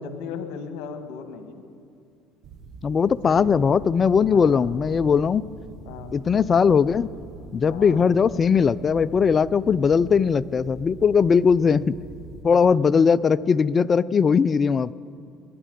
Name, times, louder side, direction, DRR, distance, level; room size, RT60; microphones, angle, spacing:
voice 1, 0.0-1.6 3.2-3.7 4.2-4.7 5.8-6.2 7.6-8.0 12.5-12.6, left 6 dB, 70° left, 8 dB, 1.4 m, -37 dB
sound 1, 2.4-12.4, right 4 dB, 60° right, 1.6 m, -44 dB
voice 2, 2.8-5.4 6.1-7.1 7.5-11.9 12.4-14.9, left 6 dB, 35° left, 19 dB, 0.4 m, -19 dB
22.0 x 10.0 x 5.2 m, 2.5 s
supercardioid pair, 80°, 0 cm